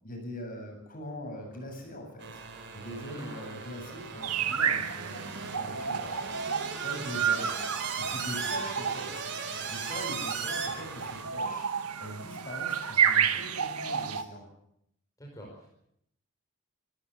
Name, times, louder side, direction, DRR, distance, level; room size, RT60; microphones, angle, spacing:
voice 1, 0.0-2.4 2.7-7.6 8.0-9.2 9.7-11.7 12.0-14.4, equal, 40° left, 3 dB, 8.0 m, -42 dB
sound 1, 1.0-1.1 1.4-2.2 2.6-5.2, equal, 15° right, 6.2 m, -53 dB
sound 2, 2.2-11.2, right 5 dB, 55° right, 4.0 m, -38 dB
sound 3, 4.2-14.2, right 7 dB, 80° right, 1.5 m, -31 dB
voice 2, 15.2-15.7, equal, 15° left, -2 dB, 5.1 m, -47 dB
26.0 x 14.5 x 8.3 m, 0.74 s
head